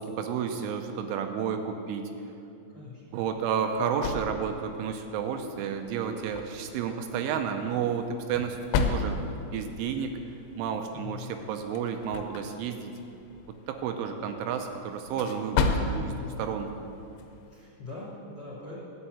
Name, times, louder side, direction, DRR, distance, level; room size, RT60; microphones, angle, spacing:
voice 1, 0.2-2.1 3.1-8.6 8.9-9.2 9.5-10.2 10.5-12.9 13.7-16.7, right 7 dB, 85° right, 5 dB, 3.1 m, -31 dB
voice 2, 2.7-3.0 10.9-11.3 16.0-16.5 17.5-18.8, left 3 dB, 35° left, -6 dB, 2.8 m, -42 dB
sound 1, 3.1-17.6, left 4 dB, 80° left, 3.0 m, -35 dB
11.5 x 5.6 x 8.2 m, 2.7 s
omnidirectional pair, 5.6 m